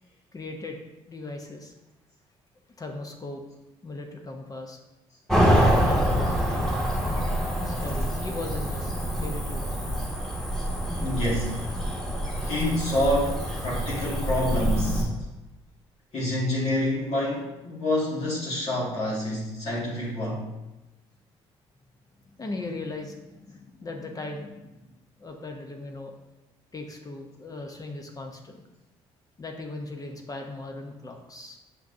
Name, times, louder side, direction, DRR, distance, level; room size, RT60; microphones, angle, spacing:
voice 1, 0.3-0.8 1.1-1.7 2.8-3.4 3.8-4.8 5.8-9.7 22.3-24.7 25.2-26.1 26.7-28.6 29.4-31.6, left 2 dB, 30° left, 3 dB, 0.8 m, -38 dB
Cricket / Motor vehicle (road), 5.3-15.0, equal, 5° left, 1.7 m, -26 dB
voice 2, 11.0-11.5 12.4-15.1 16.1-20.4, left 1 dB, 60° left, -7 dB, 2.0 m, -27 dB
6.1 x 5.9 x 2.7 m, 1.0 s
supercardioid pair, 70°, 12 cm